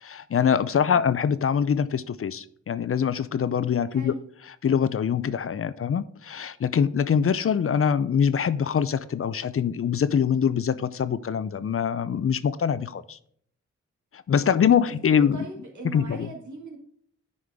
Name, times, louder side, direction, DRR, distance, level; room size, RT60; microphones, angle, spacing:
voice 1, 0.0-4.1 4.6-13.2 14.3-15.4 15.8-16.3, left 7 dB, 50° left, 0.5 m, -24 dB
voice 2, 0.8-1.1 3.9-4.2 15.2-16.8, right 1 dB, 75° right, 2.4 m, -40 dB
9.5 x 5.0 x 3.5 m
cardioid pair, 65°, 29 cm